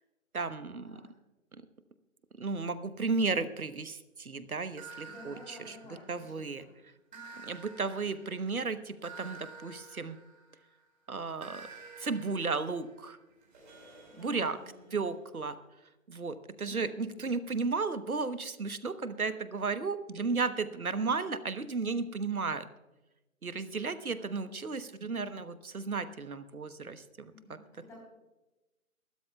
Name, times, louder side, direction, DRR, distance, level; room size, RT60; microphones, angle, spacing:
voice 1, 0.3-1.0 1.5-1.6 2.4-5.8 6.1-6.6 7.4-10.2 11.1-11.7 12.0-13.2 14.2-14.6 14.9-15.6 16.1-22.7 23.4-27.3, right 4 dB, 80° right, 12 dB, 1.1 m, -34 dB
sound 1, 4.8-6.5 7.1-10.8 11.4-15.1, right 4 dB, 35° right, 4.5 m, -51 dB
voice 2, 5.0-6.7 7.1-7.2 14.1-15.1 16.6-17.3 21.2-21.5 24.0-24.8 27.3-28.0, left 2 dB, 5° left, -4 dB, 3.4 m, -53 dB
23.0 x 13.0 x 2.3 m, 1.0 s
figure-of-eight pair, 150°, 42 cm